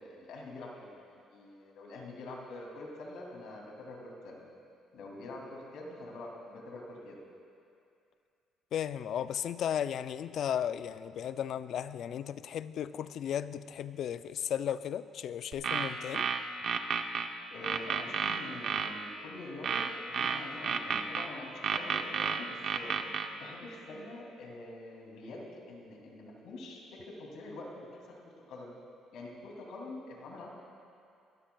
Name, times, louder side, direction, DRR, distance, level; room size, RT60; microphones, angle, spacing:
voice 1, 0.0-4.4 4.9-7.2 17.5-23.0 23.4-27.9 28.5-28.7 29.1-30.5, left 2 dB, 75° left, -2 dB, 2.6 m, -45 dB
voice 2, 8.7-16.3, left 9 dB, 50° left, 14 dB, 0.3 m, -35 dB
sound 1, 15.5-17.3 17.6-18.9 19.6-21.3 21.6-23.3, right 6 dB, 45° right, 0.6 m, -31 dB
22.5 x 13.5 x 2.3 m, 2.5 s
cardioid pair, 165°, 0 cm